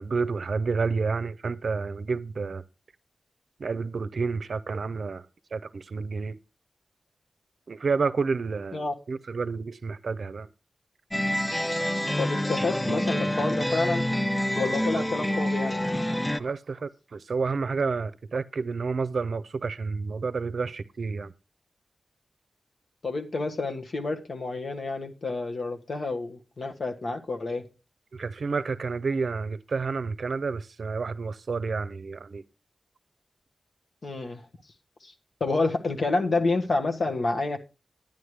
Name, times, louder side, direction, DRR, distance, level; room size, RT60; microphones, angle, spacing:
voice 1, 0.0-2.6 3.6-5.3 5.5-6.4 7.7-10.5 14.9-15.3 16.4-21.3 28.1-32.4, right 4 dB, 75° right, 0.6 m, -30 dB
sound 1, 11.1-16.4, left 1 dB, 15° left, 0.5 m, -27 dB
voice 2, 12.2-14.0 14.6-15.8 23.0-27.6 34.0-34.4 35.0-35.1 35.4-37.6, left 3 dB, 70° left, 1.4 m, -29 dB
10.5 x 9.6 x 3.3 m
wide cardioid pair, 65°, 0 cm